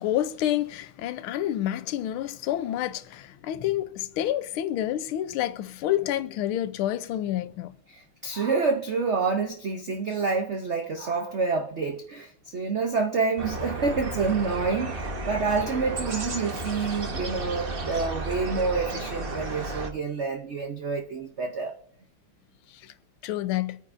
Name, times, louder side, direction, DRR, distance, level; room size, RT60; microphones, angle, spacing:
voice 1, 0.0-7.7 22.8-22.9 23.2-23.8, left 12 dB, 85° left, 1.5 m, -28 dB
voice 2, 7.9-21.8, right 4 dB, 75° right, 0.6 m, -28 dB
sound 1, 13.4-19.9, right 2 dB, 40° right, 0.9 m, -33 dB
24.0 x 9.2 x 2.6 m
omnidirectional pair, 2.3 m